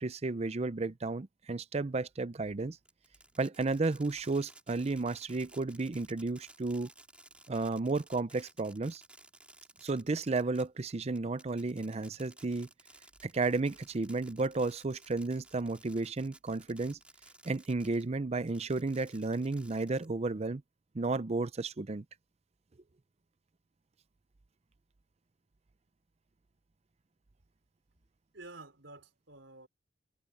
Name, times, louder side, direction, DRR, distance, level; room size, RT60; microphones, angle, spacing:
voice 1, 0.0-2.8 3.4-6.9 7.5-9.0 9.8-12.7 13.2-17.0 17.4-20.6 20.9-22.0, right 3 dB, 35° right, 0.6 m, -33 dB
Fireworks, 2.9-18.1 18.5-20.3, right 2 dB, 5° right, 3.1 m, -57 dB
voice 2, 28.3-29.7, right 2 dB, 90° right, 4.3 m, -50 dB
head